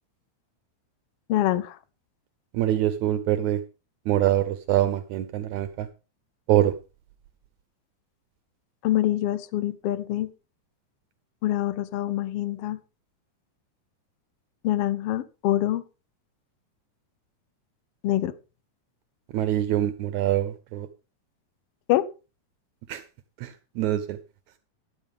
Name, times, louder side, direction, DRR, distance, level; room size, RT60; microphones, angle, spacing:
voice 1, 1.3-1.8 8.8-10.3 11.4-12.8 14.6-15.8 18.0-18.3 21.9-22.0, left 14 dB, 80° left, 16 dB, 1.3 m, -25 dB
voice 2, 2.5-3.6 4.1-5.9 6.5-6.7 19.3-20.9 22.9-23.0 23.4-23.5 23.8-24.2, right 12 dB, 75° right, 11 dB, 2.0 m, -24 dB
13.5 x 11.5 x 3.5 m, 0.31 s
omnidirectional pair, 3.5 m